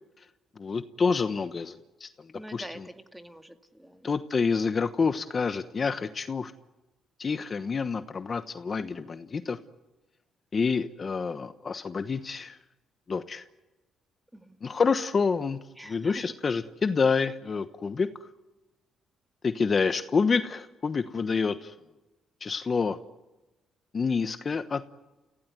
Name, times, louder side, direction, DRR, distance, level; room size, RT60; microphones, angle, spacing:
voice 1, 0.6-2.3 2.5-2.8 4.0-6.5 7.2-9.6 10.5-12.6 13.1-13.4 14.6-15.6 15.9-18.1 19.4-21.7 22.4-23.0 23.9-25.0, left 5 dB, 40° left, 11 dB, 1.1 m, -28 dB
voice 2, 2.3-4.1 14.3-14.6 15.8-16.2, right 1 dB, 5° right, 8 dB, 2.2 m, -45 dB
29.5 x 16.5 x 9.6 m, 1.1 s
cardioid pair, 90°, 0 cm